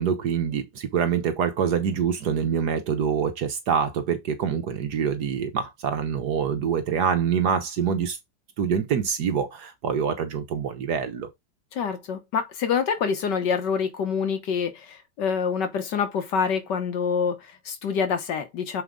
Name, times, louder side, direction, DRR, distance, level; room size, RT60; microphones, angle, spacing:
voice 1, 0.0-8.2 8.6-11.3, right 7 dB, 65° right, 1.5 m, -25 dB
voice 2, 11.7-18.8, left 6 dB, 75° left, 1.8 m, -26 dB
7.1 x 4.7 x 3.7 m
omnidirectional pair, 1.9 m